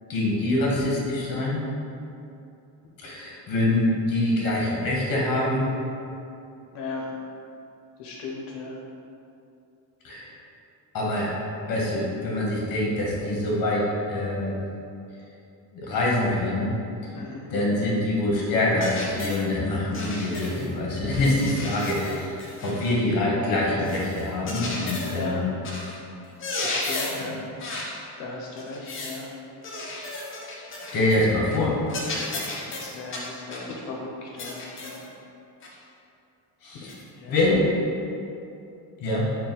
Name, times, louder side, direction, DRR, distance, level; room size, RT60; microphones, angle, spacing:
voice 1, 0.1-1.6 3.0-5.7 10.0-10.3 10.9-11.4 11.7-14.6 15.7-16.8 17.0-17.1 17.5-22.3 22.6-25.5 30.9-31.8 36.6-37.0 37.3-37.6 39.0-39.3, left 1 dB, 50° left, -3 dB, 1.0 m, -25 dB
voice 2, 6.7-7.1 8.0-8.8 17.1-17.5 25.1-25.4 26.6-27.4 28.2-29.3 32.0-35.0 36.7-37.6, left 3 dB, 70° left, -3 dB, 0.7 m, -37 dB
sound 1, 18.8-19.4 19.9-20.7 21.1-23.0 23.8-25.3 25.6-26.0 26.3-27.3 27.6-28.0 28.6-29.2 29.6-31.2 31.5-31.6 31.9-33.7 34.4-35.0 35.6-35.8 36.9-37.0, left 2 dB, 30° left, 0.5 m, -34 dB
3.9 x 2.3 x 4.0 m, 2.7 s
cardioid pair, 145°, 43 cm